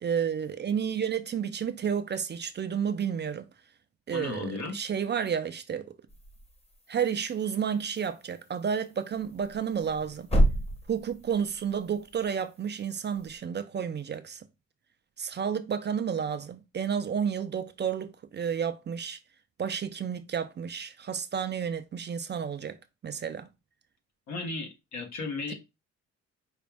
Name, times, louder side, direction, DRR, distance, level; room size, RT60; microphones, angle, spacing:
voice 1, 0.0-3.5 4.1-5.9 6.9-10.3 10.9-14.4 15.2-19.2 19.6-22.8 23.0-23.5 25.5-25.6, right 7 dB, 35° right, 0.5 m, -31 dB
voice 2, 4.1-4.7 24.3-25.5, left 3 dB, 65° left, 1.3 m, -35 dB
sound 1, 6.1-13.4, right 1 dB, 20° left, 1.1 m, -33 dB
5.1 x 2.4 x 3.4 m
cardioid pair, 90°, 30 cm